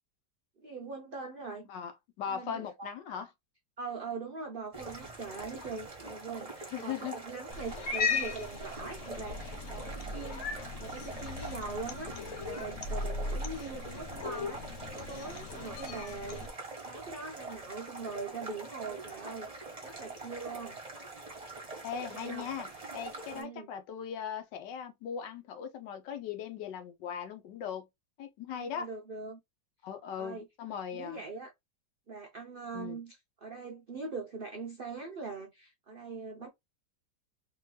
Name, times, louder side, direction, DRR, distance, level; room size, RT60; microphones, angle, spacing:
voice 1, 0.6-1.7 2.3-2.9 3.8-10.5 10.8-12.1 12.4-16.5 16.8-20.8 22.1-22.5 23.3-23.7 28.5-29.4 30.2-30.5 30.9-31.5 32.1-36.5, right 4 dB, 75° right, 0.5 m, -42 dB
voice 2, 2.2-3.3 6.7-7.2 21.8-27.9 28.2-28.9 29.8-31.2 32.7-33.0, left 8 dB, 75° left, 1.3 m, -39 dB
sound 1, 4.7-23.4, right 3 dB, 20° right, 1.2 m, -44 dB
Cat, 7.5-16.5, left 4 dB, 60° left, 0.8 m, -37 dB
3.6 x 3.0 x 3.1 m
omnidirectional pair, 2.0 m